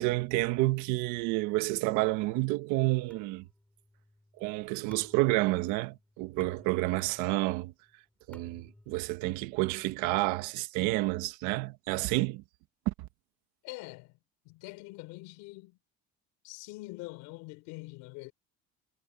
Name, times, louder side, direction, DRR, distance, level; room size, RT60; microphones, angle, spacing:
voice 1, 0.0-3.4 4.4-7.7 8.3-12.4 12.8-13.1, right 20 dB, 85° right, 1.5 m, -29 dB
sound 1, 3.1-10.5, left 1 dB, 5° left, 5.4 m, -59 dB
voice 2, 13.6-14.2 14.4-15.8 16.4-18.3, left 23 dB, 85° left, 4.8 m, -44 dB
cardioid pair, 180°, 29 cm